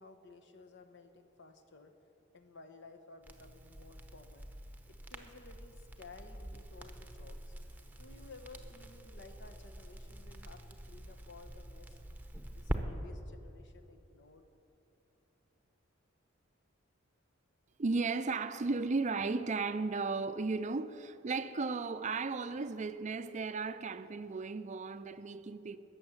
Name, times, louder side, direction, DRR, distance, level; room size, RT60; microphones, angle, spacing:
voice 1, 0.0-1.9 2.3-4.5 4.9-7.5 8.0-12.0 12.5-14.5, left 3 dB, 65° left, 1.1 m, -55 dB
Crackle, 3.2-12.8, right 1 dB, 10° right, 0.9 m, -45 dB
voice 2, 17.8-25.8, right 4 dB, 40° right, 0.5 m, -35 dB
21.0 x 7.1 x 7.2 m
head